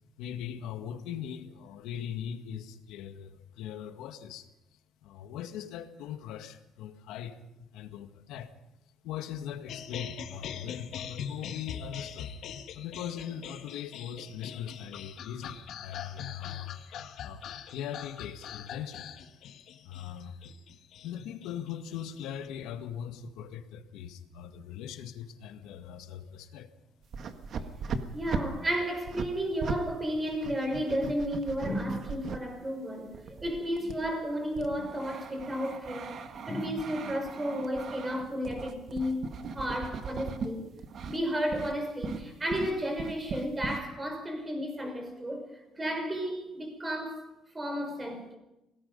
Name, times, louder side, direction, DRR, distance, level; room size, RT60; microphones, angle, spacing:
voice 1, 0.2-4.5 5.0-8.5 9.0-12.3 12.7-17.4 17.7-19.1 19.8-20.4 21.0-26.7, left 9 dB, 80° left, 1.8 m, -40 dB
sound 1, 9.7-22.5, left 8 dB, 55° left, 1.7 m, -42 dB
sound 2, 27.0-29.8 30.1-32.4 33.1-40.5 40.8-41.2 41.5-41.7 42.0-43.8, right 5 dB, 45° right, 1.6 m, -38 dB
voice 2, 27.8-36.2 36.5-39.2 39.5-40.7 41.1-45.5 45.8-47.3 47.5-48.4, equal, 15° right, 5.2 m, -33 dB
26.0 x 18.5 x 5.4 m
cardioid pair, 150°, 0 cm